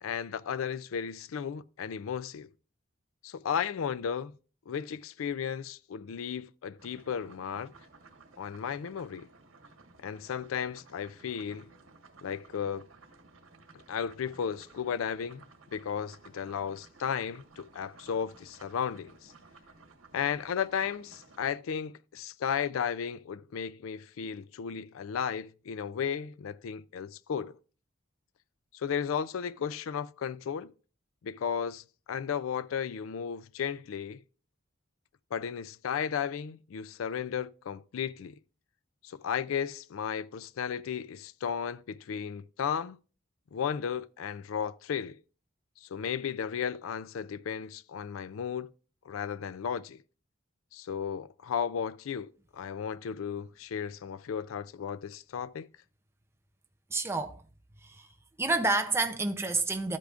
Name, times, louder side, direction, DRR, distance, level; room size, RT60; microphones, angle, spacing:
voice 1, 0.0-2.5 3.2-4.3 4.7-7.7 8.4-9.3 10.0-11.7 12.2-12.8 13.9-15.4 15.7-19.3 20.1-27.6 28.7-30.7 31.2-34.2 35.3-38.4 39.0-43.0 43.5-45.2 45.8-48.7 49.1-50.0 50.7-55.7, left 7 dB, 90° left, 0.4 m, -34 dB
sound 1, 6.8-21.5, right 3 dB, 85° right, 1.4 m, -56 dB
voice 2, 56.9-57.4 57.8-58.1 58.4-60.0, right 3 dB, 15° right, 0.5 m, -29 dB
13.0 x 8.3 x 2.4 m
head